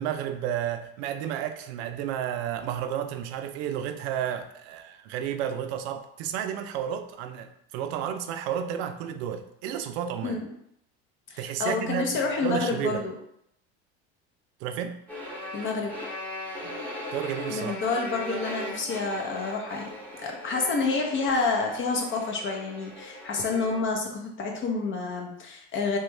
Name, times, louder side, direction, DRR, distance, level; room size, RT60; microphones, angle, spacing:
voice 1, 0.0-10.4 11.4-13.0 14.6-15.0 17.1-17.8, right 9 dB, 80° right, 8 dB, 0.5 m, -32 dB
voice 2, 11.3-13.1 15.5-15.9 17.5-19.9 20.2-26.0, left 4 dB, 40° left, 1 dB, 0.8 m, -28 dB
sound 1, 15.1-23.9, left 1 dB, 5° left, 1.0 m, -39 dB
3.1 x 2.2 x 3.1 m, 0.74 s
supercardioid pair, 110°, 31 cm